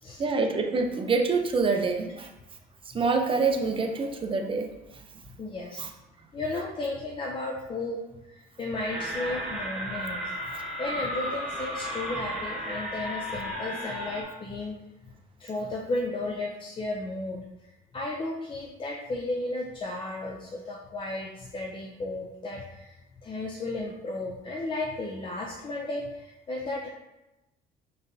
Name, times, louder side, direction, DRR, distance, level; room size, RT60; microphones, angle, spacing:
voice 1, 0.2-2.3 2.9-4.7 5.8-5.9, right 4 dB, 30° right, 4 dB, 0.6 m, -26 dB
voice 2, 5.4-5.8 6.3-14.8 15.4-17.4 17.9-23.0 23.2-26.9, left 2 dB, 30° left, -1 dB, 0.5 m, -34 dB
sound 1, 8.9-14.2, equal, 5° right, 1.1 m, -34 dB
5.2 x 3.2 x 2.7 m, 0.98 s
cardioid pair, 110°, 17 cm